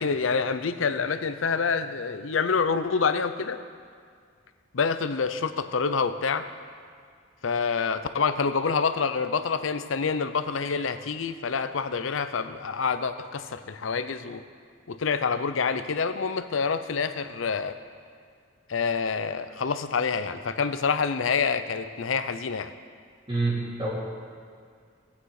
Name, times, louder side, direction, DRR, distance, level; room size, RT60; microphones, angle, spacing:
voice 1, 0.0-3.6 4.7-6.5 7.4-14.4 14.9-17.8 18.7-22.7, left 5 dB, 85° left, 11 dB, 0.6 m, -27 dB
voice 2, 23.3-23.9, right 3 dB, 25° right, -7 dB, 2.5 m, -27 dB
18.0 x 8.5 x 4.8 m, 2.1 s
head